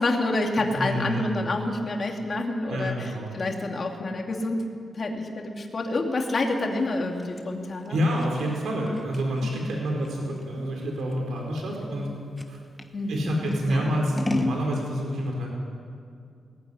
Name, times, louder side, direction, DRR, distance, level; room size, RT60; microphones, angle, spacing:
voice 1, 0.0-4.6 4.9-8.0 8.7-9.0 9.5-9.7 11.9-12.0 12.9-14.0, left 2 dB, 35° left, 1 dB, 2.6 m, -28 dB
voice 2, 0.7-1.3 2.7-3.3 7.9-12.1 12.5-12.6 13.1-15.5, equal, 85° right, 0 dB, 4.6 m, -28 dB
Scissors, 6.8-12.9 13.5-14.6, left 2 dB, 15° left, 1.2 m, -34 dB
20.5 x 15.5 x 10.0 m, 2.4 s
wide cardioid pair, 160°, 0 cm